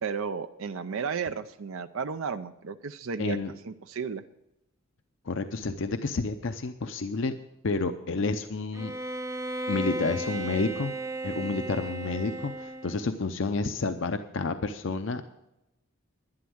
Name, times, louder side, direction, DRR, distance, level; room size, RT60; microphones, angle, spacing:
voice 1, 0.0-3.4 3.6-4.2, right 6 dB, 75° right, 10 dB, 0.5 m, -33 dB
voice 2, 3.2-3.5 5.3-7.3 7.6-8.9 9.3-9.4 9.7-10.9 11.2-15.2, left 3 dB, 65° left, 8 dB, 0.6 m, -30 dB
Bowed string instrument, 8.7-13.2, right 1 dB, 15° right, 0.6 m, -35 dB
11.5 x 10.5 x 6.3 m, 0.87 s
head